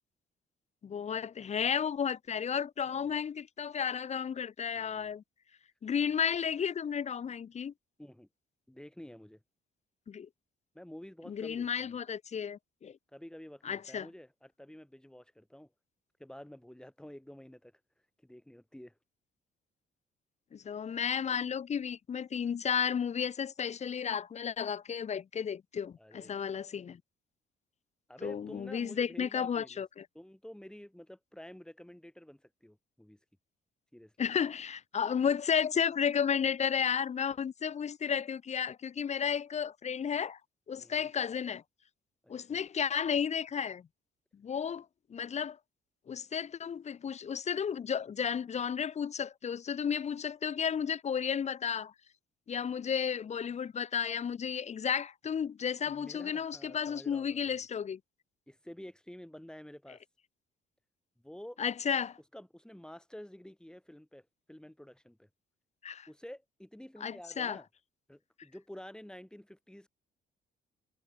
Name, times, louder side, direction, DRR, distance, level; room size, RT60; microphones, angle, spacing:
voice 1, 0.8-5.2 5.8-7.7 10.1-10.3 11.3-12.9 13.6-14.1 20.5-27.0 28.2-30.0 34.2-40.4 40.7-41.6 42.3-43.8 44.4-45.6 46.1-51.9 52.5-58.0 61.6-62.2 65.8-66.1 67.0-67.6, left 7 dB, 35° left, 0.5 m, -33 dB
voice 2, 2.9-3.2 4.7-5.2 8.0-8.3 8.7-9.4 10.7-12.0 13.1-15.7 16.2-17.7 18.2-19.0 21.3-21.4 26.0-26.5 28.1-29.8 30.1-33.2 33.9-34.1 40.8-41.1 42.2-42.6 55.8-57.7 58.5-60.0 61.2-61.6 62.3-65.3 66.1-67.7 68.1-69.9, equal, 5° left, 5.2 m, -50 dB
cardioid pair, 90°, 20 cm